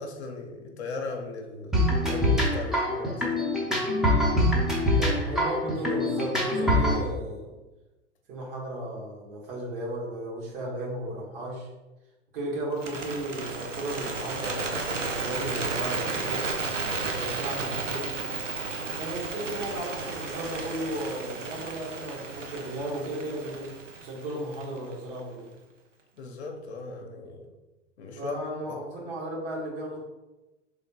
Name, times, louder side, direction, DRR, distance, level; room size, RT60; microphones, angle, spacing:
voice 1, 0.0-3.3 5.0-5.3 26.2-27.5 28.0-28.3 28.7-28.8, left 3 dB, 65° left, 3 dB, 0.7 m, -38 dB
sound 1, 1.7-7.0, left 1 dB, ahead, 0.7 m, -24 dB
voice 2, 5.2-7.6 8.3-11.7 12.3-16.5 17.1-18.1 18.9-25.5 28.1-30.0, right 1 dB, 50° right, -3 dB, 1.4 m, -35 dB
Bird, 12.7-24.9, right 3 dB, 85° right, 0.6 m, -33 dB
3.5 x 3.2 x 2.8 m, 1.1 s
figure-of-eight pair, 95°, 36 cm